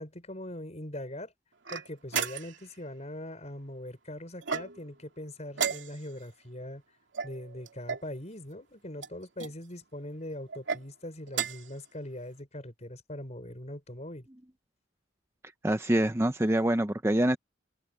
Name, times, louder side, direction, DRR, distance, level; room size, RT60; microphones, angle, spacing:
voice 1, 0.0-1.3 1.7-6.8 7.2-14.3, left 1 dB, 35° left, 5.6 m, -41 dB
sound 1, 1.7-2.7 4.4-5.0 5.5-6.3 7.1-8.1 9.0-9.5 10.5-10.8 11.3-11.8, right 6 dB, 75° right, 2.5 m, -34 dB
voice 2, 15.6-17.4, right 1 dB, 15° right, 0.6 m, -25 dB
head